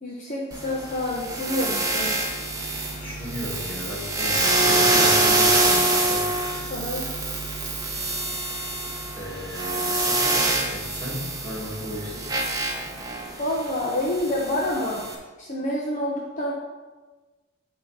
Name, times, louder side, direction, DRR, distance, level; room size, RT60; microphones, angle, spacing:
voice 1, 0.0-2.2 6.7-7.1 13.4-15.0 15.4-16.5, left 1 dB, 35° left, -4 dB, 1.0 m, -28 dB
sound 1, 0.5-15.1, right 2 dB, 15° right, 0.9 m, -25 dB
voice 2, 3.0-6.3 9.2-12.3, equal, 10° left, -7 dB, 2.2 m, -34 dB
9.2 x 3.1 x 6.6 m, 1.3 s
head